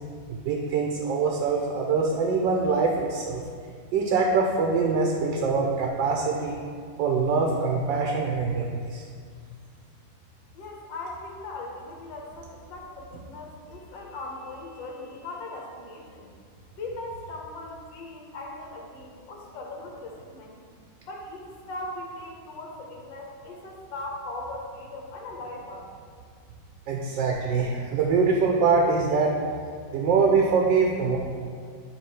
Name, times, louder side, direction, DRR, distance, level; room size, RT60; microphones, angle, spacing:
voice 1, 0.3-3.4 3.9-6.6 7.0-9.1 26.9-29.3 29.9-31.2, right 4 dB, 70° right, 0 dB, 1.3 m, -24 dB
voice 2, 10.5-16.3 16.8-20.6 21.0-25.9, left 2 dB, 65° left, -1 dB, 1.6 m, -39 dB
9.1 x 3.5 x 4.7 m, 2.1 s
omnidirectional pair, 2.2 m